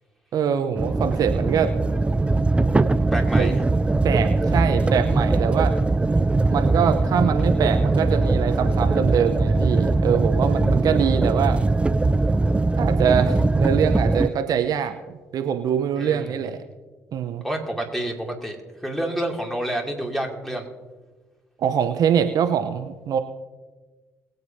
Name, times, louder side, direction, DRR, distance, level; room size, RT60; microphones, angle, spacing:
voice 1, 0.3-1.7 3.4-3.6 4.0-5.7 6.5-11.6 12.8-14.9 15.3-16.6 17.1-17.4 21.6-23.2, right 8 dB, 55° right, 7 dB, 0.8 m, -23 dB
sound 1, 0.8-14.3, right 2 dB, 15° right, 0.4 m, -21 dB
voice 2, 3.1-3.6 16.0-16.5 17.4-18.6 18.8-20.7, right 1 dB, 5° left, 1 dB, 2.7 m, -28 dB
23.0 x 8.5 x 2.8 m, 1.3 s
hypercardioid pair, 45°, 7 cm